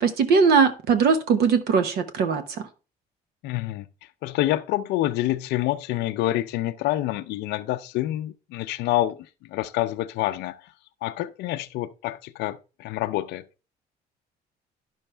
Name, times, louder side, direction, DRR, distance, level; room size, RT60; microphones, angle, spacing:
voice 1, 0.0-2.6, right 5 dB, 70° right, 0.8 m, -20 dB
voice 2, 3.4-3.9 4.2-9.2 9.5-10.7 11.0-13.4, left 15 dB, 80° left, 0.5 m, -27 dB
10.0 x 6.2 x 3.3 m
cardioid pair, 110°, 17 cm